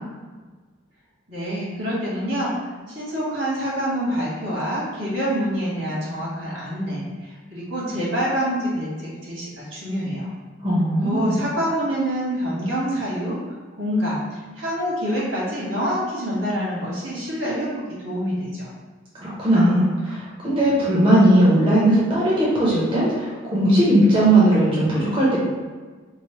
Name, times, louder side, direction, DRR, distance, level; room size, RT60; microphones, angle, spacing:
voice 1, 1.3-2.5 2.9-10.3 11.0-13.4 13.8-18.7, equal, 75° right, -6 dB, 1.4 m, -26 dB
voice 2, 10.6-11.4 19.1-25.4, right 1 dB, 25° right, -7 dB, 0.6 m, -18 dB
3.1 x 2.0 x 4.1 m, 1.4 s
head